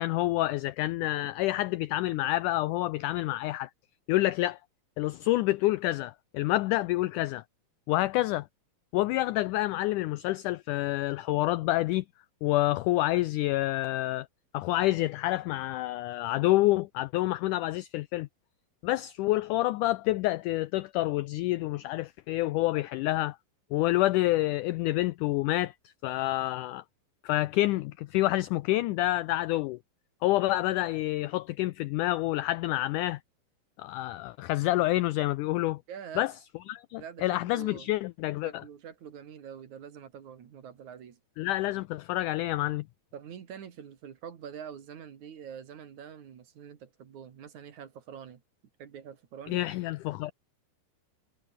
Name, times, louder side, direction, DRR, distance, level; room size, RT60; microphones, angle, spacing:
voice 1, 0.0-3.7 4.1-4.6 5.0-7.4 7.9-8.5 8.9-12.0 12.4-14.3 14.5-18.3 18.8-23.4 23.7-25.7 26.0-26.8 27.2-29.8 30.2-33.2 33.8-35.8 36.2-36.3 36.7-38.5 41.4-42.8 49.5-50.3, left 17 dB, 85° left, 1.8 m, -28 dB
voice 2, 35.9-36.3 36.9-37.9 38.4-41.2 43.1-48.4 48.8-49.6, right 8 dB, 55° right, 3.2 m, -45 dB
omnidirectional pair, 4.2 m